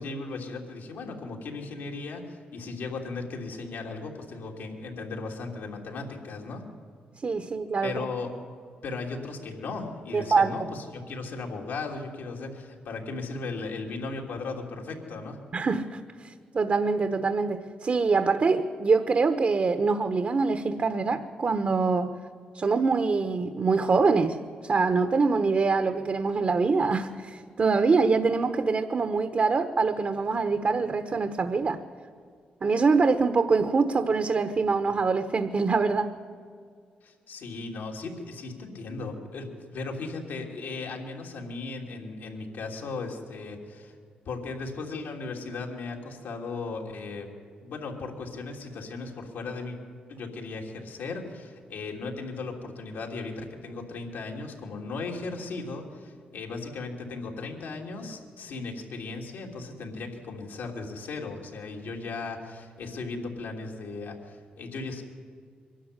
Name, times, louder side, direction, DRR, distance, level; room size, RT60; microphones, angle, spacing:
voice 1, 0.0-6.6 7.8-8.3 8.8-15.4 37.0-43.9 44.2-47.3 47.6-49.8 50.1-65.0, left 3 dB, 80° left, 1 dB, 3.1 m, -36 dB
voice 2, 7.2-8.0 10.1-10.5 15.5-22.1 22.5-24.4 24.6-31.8 32.6-36.1, right 4 dB, 50° right, 9 dB, 1.2 m, -24 dB
23.5 x 12.5 x 9.9 m, 2.1 s
supercardioid pair, 55°, 3 cm